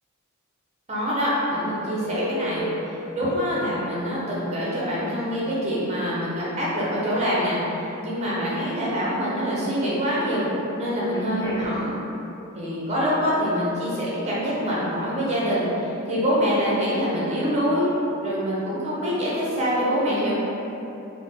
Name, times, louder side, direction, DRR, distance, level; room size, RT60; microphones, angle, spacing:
voice 1, 0.9-7.6 8.0-10.5 10.8-11.9 12.5-17.9 18.2-20.3, equal, 30° right, -7 dB, 0.8 m, -25 dB
Telephone, 2.0-2.7 3.2-3.3 5.1-5.2 5.6-5.8 11.1-11.9 19.0-19.2, equal, 15° left, 0.5 m, -34 dB
3.6 x 2.1 x 3.5 m, 3.0 s
head